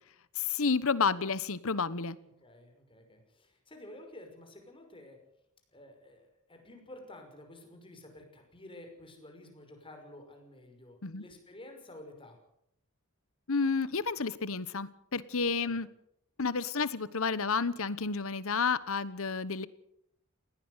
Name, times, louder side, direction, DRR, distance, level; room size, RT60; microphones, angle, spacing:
voice 1, 0.4-2.2 11.0-11.2 13.5-15.9 16.4-19.7, left 5 dB, 65° left, 17 dB, 1.1 m, -30 dB
voice 2, 2.4-5.2 5.7-12.4 15.4-15.8, left 1 dB, 25° left, 4 dB, 5.8 m, -51 dB
20.5 x 18.0 x 8.1 m, 0.75 s
head